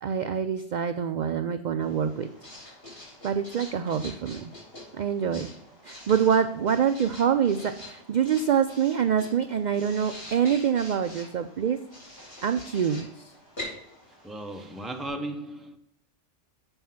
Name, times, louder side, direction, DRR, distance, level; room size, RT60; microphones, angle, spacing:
voice 1, 0.0-2.3 3.2-4.5 4.9-5.5 5.8-11.8 12.4-13.3, right 8 dB, 60° right, 0.5 m, -25 dB
Writing, 1.8-15.1, left 1 dB, 55° left, 4.1 m, -45 dB
voice 2, 14.2-15.8, right 1 dB, ahead, 0.6 m, -36 dB
7.4 x 5.6 x 5.7 m
omnidirectional pair, 1.2 m